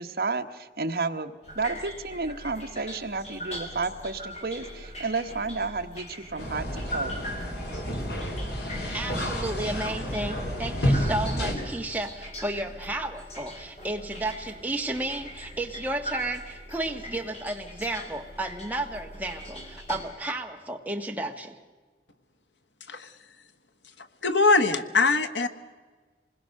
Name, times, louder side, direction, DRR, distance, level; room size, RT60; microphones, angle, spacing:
voice 1, 0.0-7.2, right 3 dB, 55° right, 6 dB, 1.1 m, -31 dB
sound 1, 1.4-20.0, equal, 35° left, 4.4 m, -41 dB
sound 2, 6.4-11.5, equal, 65° left, 3.6 m, -30 dB
voice 2, 8.9-21.6, right 2 dB, 10° right, 3 dB, 1.4 m, -32 dB
voice 3, 24.2-25.5, left 3 dB, 85° left, 9 dB, 1.3 m, -22 dB
26.5 x 20.5 x 6.5 m, 1.4 s
head